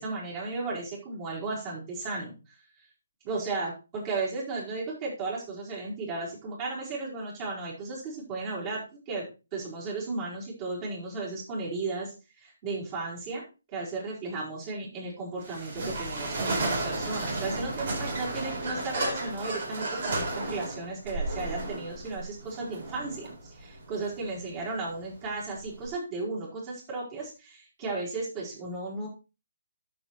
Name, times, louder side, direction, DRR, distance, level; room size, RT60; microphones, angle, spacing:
voice 1, 0.0-2.6 3.2-13.4 13.7-29.1, right 3 dB, 30° right, -7 dB, 4.7 m, -35 dB
sound 1, 15.4-25.9, right 2 dB, 50° right, 4.4 m, -33 dB
12.0 x 6.7 x 4.4 m, 0.31 s
figure-of-eight pair, 140°, 0 cm